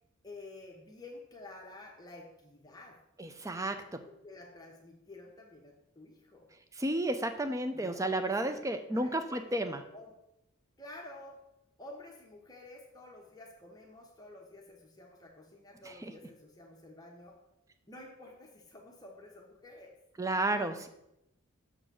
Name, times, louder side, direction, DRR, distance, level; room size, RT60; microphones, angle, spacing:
voice 1, 0.2-3.0 3.8-3.9 4.2-6.5 7.7-10.2 10.8-11.4 11.8-17.4 17.9-20.0, left 2 dB, 15° left, 0 dB, 0.9 m, -51 dB
voice 2, 3.2-4.0 6.8-9.8 15.9-16.1 20.2-20.9, right 1 dB, 15° right, 8 dB, 0.4 m, -32 dB
6.7 x 3.9 x 6.2 m, 0.85 s
head